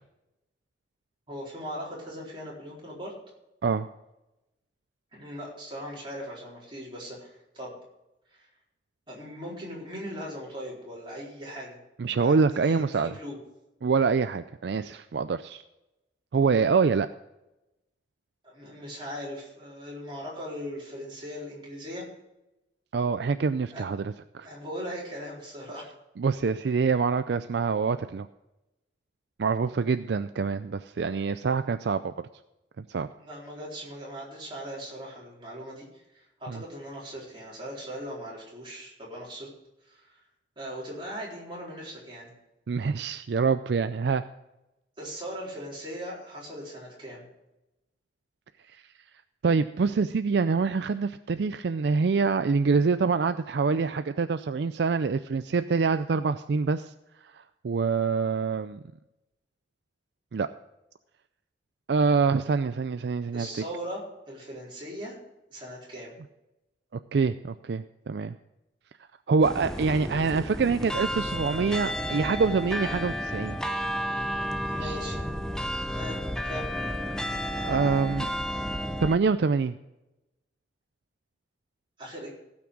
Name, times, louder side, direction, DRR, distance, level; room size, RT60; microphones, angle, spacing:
voice 1, 1.3-3.1 5.1-7.7 8.4-8.5 9.1-11.8 12.2-13.4 18.4-22.1 23.7-23.8 24.4-25.8 33.2-39.5 39.9-40.2 40.6-42.3 45.0-47.3 63.3-65.2 65.5-66.2 74.7-75.2 75.9-76.2 76.4-76.7 82.0-82.3, equal, 25° right, -5 dB, 4.2 m, -39 dB
voice 2, 12.0-13.2 13.8-15.6 16.3-17.1 22.9-24.5 26.2-28.3 29.4-32.1 32.9-33.1 36.5-36.6 42.7-44.2 49.4-56.9 57.3-58.8 60.3-60.5 61.9-63.6 67.1-68.3 69.3-73.6 74.8-75.0 77.5-78.3 79.0-79.8, right 5 dB, 65° right, 11 dB, 0.4 m, -25 dB
sound 1, 69.4-79.2, equal, 5° left, 0.6 m, -32 dB
16.0 x 6.0 x 6.2 m, 0.94 s
head